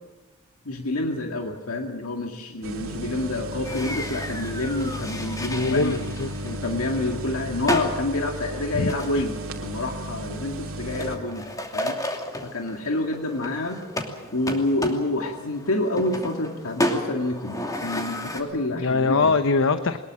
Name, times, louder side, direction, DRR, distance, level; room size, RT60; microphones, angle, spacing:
voice 1, 0.7-6.0 6.4-12.0 12.4-13.8 14.3-19.3, left 2 dB, 80° left, 3 dB, 2.0 m, -28 dB
sound 1, 2.6-11.2, right 1 dB, 70° right, 3.0 m, -34 dB
sound 2, 3.6-18.4, left 1 dB, 15° left, 2.8 m, -33 dB
voice 2, 5.4-6.3 8.7-9.3 18.7-20.0, left 3 dB, 65° left, 10 dB, 0.9 m, -23 dB
22.5 x 20.5 x 7.5 m, 1.2 s
head